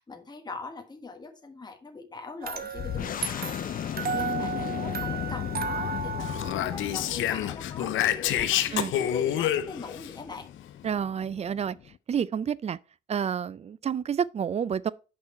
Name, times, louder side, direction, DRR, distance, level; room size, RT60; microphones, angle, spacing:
voice 1, 0.0-10.5, left 4 dB, 20° left, 1.3 m, -41 dB
sound 1, 2.4-7.4, right 5 dB, 50° right, 1.0 m, -34 dB
sound 2, 2.8-12.0, left 10 dB, 45° left, 0.4 m, -36 dB
Speech, 6.2-10.1, left 11 dB, 80° left, 0.6 m, -28 dB
voice 2, 10.8-11.8 12.1-12.8 13.1-14.9, right 8 dB, 35° right, 0.4 m, -29 dB
6.5 x 5.5 x 4.3 m
cardioid pair, 90°, 20 cm